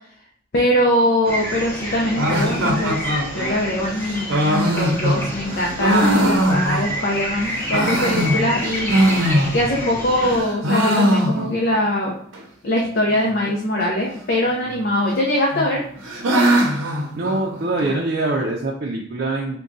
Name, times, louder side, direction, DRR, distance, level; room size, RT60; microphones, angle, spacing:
voice 1, 0.5-3.0 3.3-8.9 9.5-12.2 12.6-15.8, left 1 dB, 50° left, -2 dB, 0.6 m, -22 dB
sound 1, 1.2-10.4, equal, 10° left, 0.8 m, -29 dB
sound 2, 2.2-7.2 7.5-9.9 10.2-11.8 12.0-12.1 12.3-12.4 13.1-13.5 14.5-15.1 15.5-17.9, equal, 90° right, 0.7 m, -21 dB
voice 2, 17.1-19.6, right 2 dB, 50° right, -3 dB, 0.5 m, -23 dB
3.6 x 2.2 x 3.9 m, 0.63 s
head